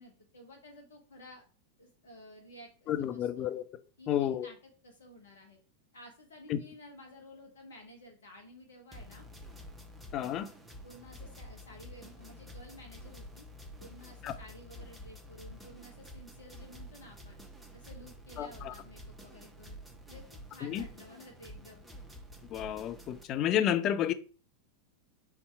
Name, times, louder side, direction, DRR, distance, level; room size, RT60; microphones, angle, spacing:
voice 1, 0.0-1.4 1.8-3.5 4.0-4.6 4.8-5.6 5.9-9.3 10.8-13.5 13.8-17.4 17.7-19.8 20.1-21.9, left 1 dB, 65° left, 0.9 m, -53 dB
voice 2, 2.9-3.6 4.1-4.5 6.5-6.6 10.1-10.5 14.2-14.3 18.4-18.7 20.6-20.8 22.5-24.1, left 10 dB, 35° left, 0.4 m, -31 dB
sound 1, 8.9-23.2, equal, 5° right, 0.8 m, -49 dB
3.5 x 2.8 x 4.5 m
figure-of-eight pair, 90°, 0 cm